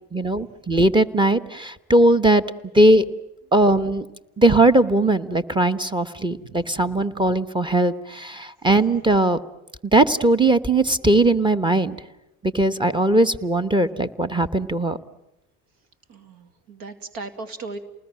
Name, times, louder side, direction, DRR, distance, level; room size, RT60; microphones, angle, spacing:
voice 1, 0.1-2.4 2.7-3.0 3.5-4.0 4.4-9.4 9.9-12.0 12.5-15.0, right 1 dB, 15° right, 12 dB, 1.3 m, -19 dB
voice 2, 16.1-17.8, right 3 dB, 70° right, 11 dB, 2.5 m, -37 dB
28.5 x 20.0 x 7.6 m, 0.94 s
supercardioid pair, 80°, 37 cm